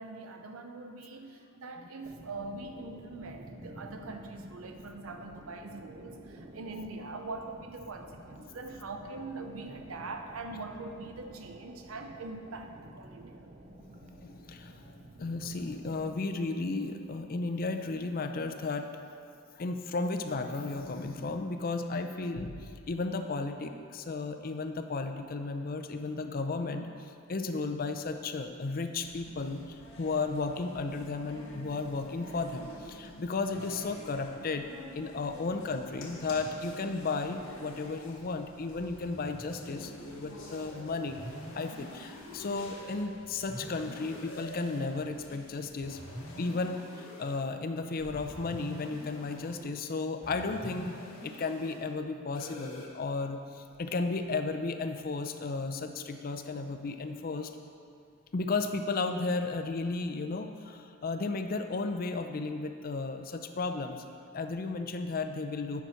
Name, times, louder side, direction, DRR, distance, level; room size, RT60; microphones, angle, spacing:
voice 1, 0.0-13.4 43.3-43.4, right 3 dB, 90° right, 5 dB, 0.7 m, -42 dB
sound 1, 2.0-16.2, right 1 dB, 35° right, 0.5 m, -51 dB
voice 2, 13.7-18.9 19.5-41.2 41.6-46.0 46.4-57.5 58.3-64.0 64.3-65.8, left 3 dB, 45° left, 7 dB, 0.5 m, -34 dB
sound 2, 29.0-46.5, left 1 dB, 65° left, 1.4 m, -50 dB
sound 3, 36.2-38.2 38.7-40.7 41.1-43.0 43.5-45.0 45.8-47.4 48.0-49.6 50.2-51.8 52.3-52.9, left 1 dB, 85° left, 1.9 m, -46 dB
9.3 x 6.0 x 4.3 m, 2.3 s
head